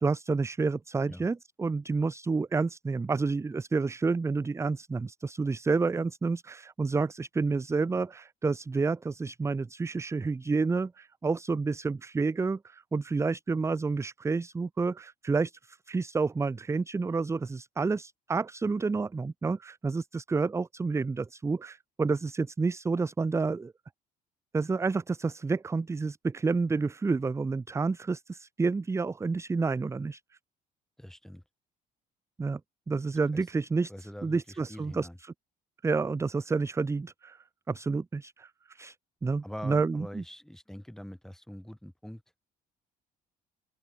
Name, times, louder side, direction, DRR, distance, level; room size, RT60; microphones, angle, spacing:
voice 1, 0.0-23.7 24.5-30.2 32.4-32.6 32.9-33.9 34.2-35.3 35.8-39.0 39.2-40.2, right 4 dB, 15° right, 0.6 m, -29 dB
voice 2, 31.0-31.4 33.3-33.5 33.9-35.2 39.4-42.2, equal, 5° left, 2.5 m, -44 dB
open air
cardioid pair, 110°, 17 cm